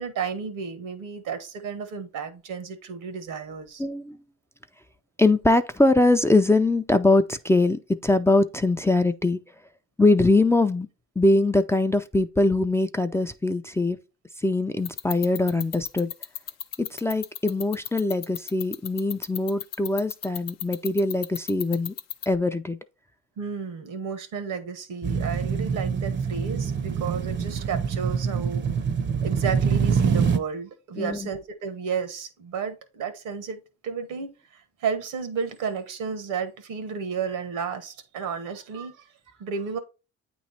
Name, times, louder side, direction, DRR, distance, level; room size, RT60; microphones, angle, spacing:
voice 1, 0.0-3.8 23.4-28.7 29.2-39.8, right 6 dB, 85° right, 1.2 m, -32 dB
voice 2, 3.8-4.2 5.2-9.4 10.0-10.9 11.2-14.0 14.4-16.1 16.8-21.9 22.3-22.8 31.0-31.3, left 2 dB, 10° left, 0.3 m, -22 dB
sound 1, 14.9-22.3, left 10 dB, 60° left, 0.5 m, -32 dB
sound 2, 25.0-30.4, right 6 dB, 40° right, 0.6 m, -25 dB
8.6 x 3.1 x 4.0 m
cardioid pair, 90°, 30 cm